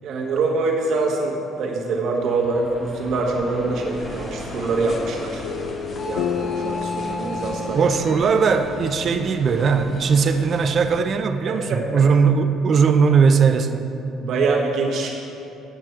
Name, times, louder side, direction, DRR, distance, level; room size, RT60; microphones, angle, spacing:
voice 1, 0.0-7.9 11.5-11.8 14.2-15.3, right 3 dB, 65° right, -1 dB, 1.3 m, -25 dB
sound 1, 2.1-7.8, right 1 dB, ahead, 1.0 m, -38 dB
sound 2, 3.7-11.0, left 4 dB, 45° left, 0.7 m, -35 dB
sound 3, 5.4-9.9, left 6 dB, 80° left, 0.3 m, -31 dB
voice 2, 7.7-13.9, right 5 dB, 45° right, 8 dB, 0.5 m, -19 dB
9.3 x 6.0 x 4.6 m, 2.7 s
cardioid pair, 90°, 0 cm